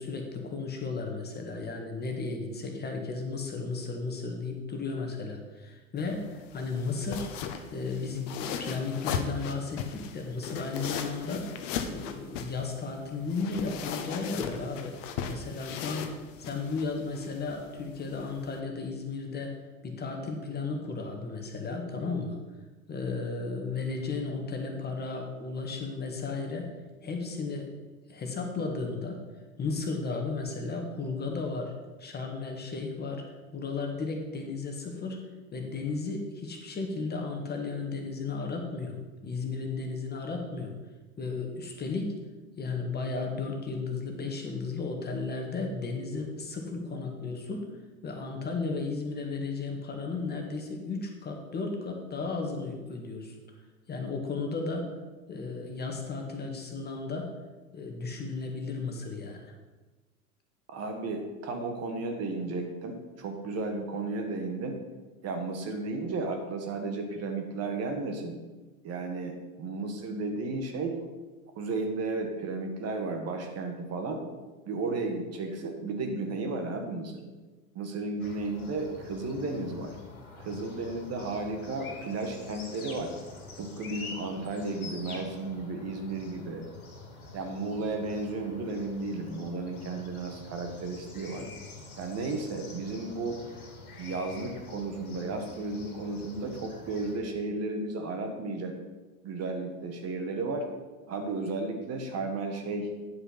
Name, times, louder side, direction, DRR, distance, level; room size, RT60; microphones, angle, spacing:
voice 1, 0.0-11.5 11.9-14.9 15.3-19.6 19.8-22.4 22.9-26.7 27.0-27.7 28.1-29.2 29.6-31.7 32.0-35.2 35.5-39.0 39.2-40.7 41.2-42.2 42.6-47.7 48.0-53.6 53.9-54.9 55.3-57.3 57.7-59.5, left 4 dB, 25° left, 2 dB, 1.6 m, -34 dB
sound 1, 6.0-18.6, left 7 dB, 60° left, 1.1 m, -38 dB
voice 2, 60.7-64.8 65.2-68.4 68.8-71.0 71.6-74.2 74.7-77.3 77.7-79.9 80.4-83.1 83.6-86.6 87.3-91.5 92.0-93.4 94.0-98.8 99.2-100.7 101.1-102.9, right 3 dB, 35° right, 5 dB, 1.5 m, -33 dB
sound 2, 78.2-97.2, left 3 dB, 80° left, 2.2 m, -46 dB
9.5 x 5.6 x 5.8 m, 1.2 s
hypercardioid pair, 95°, 43 cm